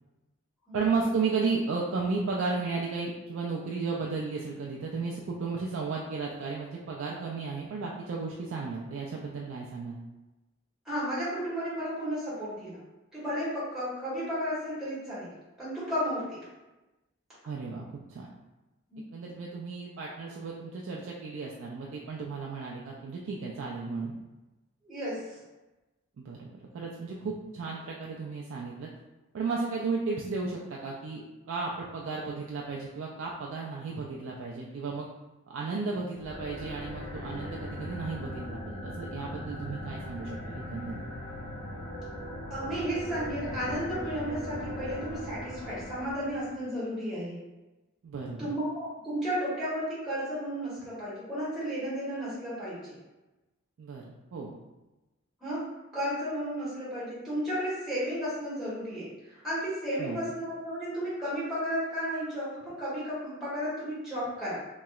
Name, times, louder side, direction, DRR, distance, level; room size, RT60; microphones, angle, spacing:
voice 1, 0.7-10.0 17.5-17.8 18.1-18.3 19.0-24.1 26.2-28.9 29.3-31.2 31.5-35.1 35.5-41.0 48.0-48.5 53.8-54.6 60.0-60.2, right 4 dB, 65° right, -3 dB, 0.3 m, -34 dB
voice 2, 10.8-12.8 13.1-16.4 18.9-19.1 24.8-25.4 42.5-47.4 48.4-53.0 55.4-64.7, equal, ahead, -10 dB, 1.4 m, -33 dB
sound 1, 36.1-46.6, left 1 dB, 45° left, 1.0 m, -39 dB
3.0 x 2.8 x 2.3 m, 1.1 s
head